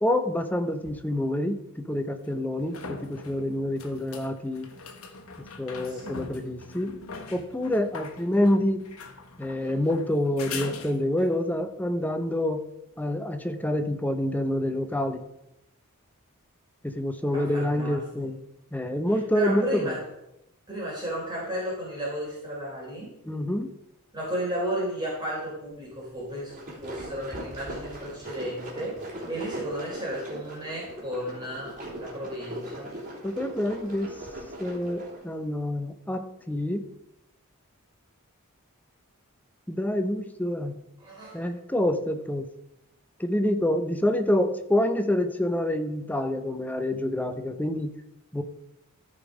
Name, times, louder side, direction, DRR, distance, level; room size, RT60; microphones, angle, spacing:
voice 1, 0.0-4.7 5.6-6.9 7.3-8.9 9.4-12.6 13.0-15.2 16.8-18.4 18.7-19.9 23.3-23.7 33.2-34.1 34.6-36.8 39.7-40.7 41.3-42.5 43.2-47.9 48.3-48.4, left 1 dB, 5° left, 7 dB, 0.7 m, -27 dB
sound 1, 0.8-0.9 2.2-11.4 14.8-14.9, left 4 dB, 70° left, 1.2 m, -42 dB
voice 2, 5.8-6.2 9.6-9.7 17.3-18.0 19.3-20.0 20.7-23.1 24.1-29.0 29.3-32.9 41.0-41.5, right 1 dB, 20° right, -6 dB, 3.8 m, -34 dB
sound 2, 26.3-35.2, right 1 dB, 35° right, 3.4 m, -39 dB
13.5 x 5.3 x 5.1 m, 0.87 s
head